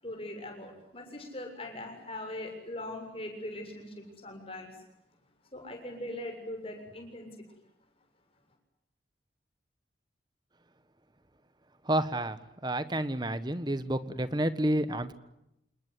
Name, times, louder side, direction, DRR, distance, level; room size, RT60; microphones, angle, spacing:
voice 1, 0.0-4.8 5.5-7.4, left 1 dB, 30° left, 3 dB, 7.2 m, -41 dB
voice 2, 11.8-15.1, right 1 dB, 25° right, 13 dB, 1.4 m, -30 dB
28.0 x 21.0 x 9.7 m, 0.84 s
head